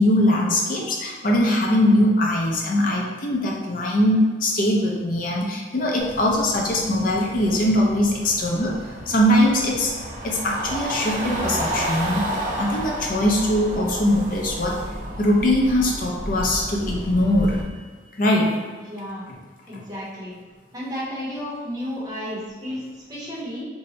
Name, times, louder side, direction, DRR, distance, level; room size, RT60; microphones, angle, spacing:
voice 1, 0.0-8.8 9.1-9.9 10.2-12.3 12.6-14.8 15.2-17.7 18.2-18.6, left 1 dB, 50° left, -1 dB, 0.5 m, -21 dB
sound 1, 6.0-17.6, right 1 dB, 45° right, 0.4 m, -32 dB
voice 2, 18.8-19.2 19.7-20.3 20.7-23.6, equal, 20° right, -8 dB, 0.9 m, -32 dB
2.7 x 2.1 x 4.0 m, 1.5 s
head